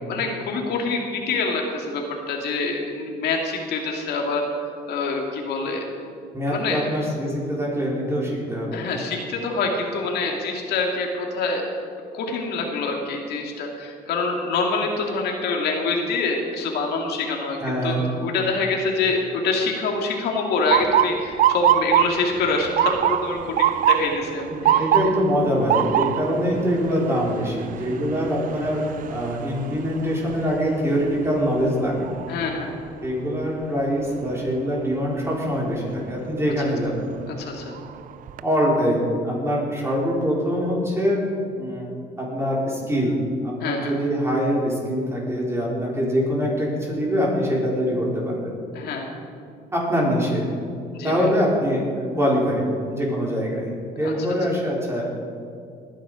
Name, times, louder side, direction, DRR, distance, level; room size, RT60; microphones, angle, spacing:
voice 1, 0.1-4.4 4.9-5.8 6.5-6.8 8.7-11.6 12.1-18.0 18.2-24.8 32.3-32.7 37.3-37.7 43.6-44.0 48.7-49.1 50.9-51.3 54.0-54.1, left 3 dB, 70° left, 1 dB, 2.4 m, -26 dB
voice 2, 6.3-8.8 17.6-18.0 24.5-32.1 33.0-37.0 38.4-41.2 41.6-41.9 42.2-43.2 43.4-48.6 49.7-50.4 51.0-55.0, equal, 15° right, -4 dB, 4.6 m, -24 dB
Motor vehicle (road) / Siren, 20.7-32.6 33.0-33.5 34.3-34.6 36.4-36.7 37.2-37.3 37.7-38.4, right 11 dB, 55° right, 0.4 m, -24 dB
20.0 x 10.0 x 5.1 m, 2.4 s
cardioid pair, 110°, 17 cm